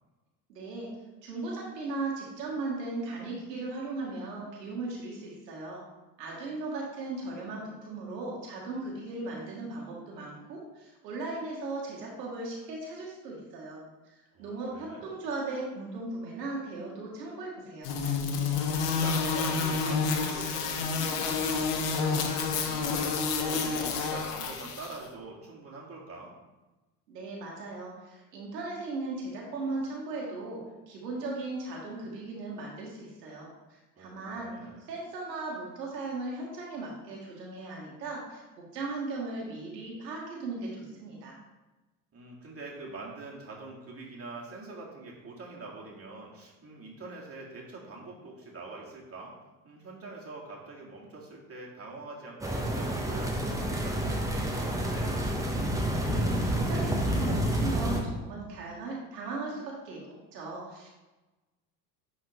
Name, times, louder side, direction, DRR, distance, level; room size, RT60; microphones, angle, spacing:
voice 1, 0.5-0.9 1.2-5.8 6.2-17.9 27.1-30.6 30.9-34.6 34.9-41.4 56.0-60.9, right 3 dB, 85° right, -3 dB, 1.6 m, -37 dB
voice 2, 14.3-15.1 18.7-26.4 34.0-34.8 42.1-49.3 49.6-55.2, right 3 dB, 30° right, -3 dB, 2.2 m, -44 dB
sound 1, 17.8-25.0, left 5 dB, 75° left, 1.1 m, -29 dB
sound 2, 52.4-58.0, right 1 dB, 5° right, 1.2 m, -29 dB
10.0 x 4.0 x 3.2 m, 1.1 s
hypercardioid pair, 75°, 48 cm